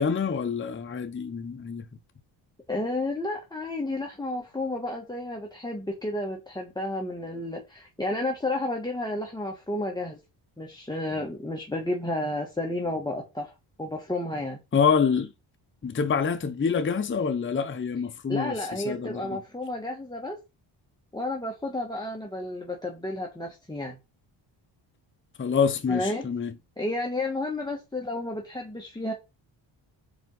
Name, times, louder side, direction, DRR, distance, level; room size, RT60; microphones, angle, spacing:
voice 1, 0.0-1.9 14.7-15.3 15.8-19.4 25.4-26.5, left 6 dB, 25° left, 0.8 m, -26 dB
voice 2, 2.7-10.2 10.6-13.5 13.8-14.6 18.3-20.4 21.1-24.0 25.9-26.2 26.8-29.1, left 1 dB, 10° left, 1.3 m, -31 dB
5.1 x 4.5 x 5.3 m
cardioid pair, 110°, 45 cm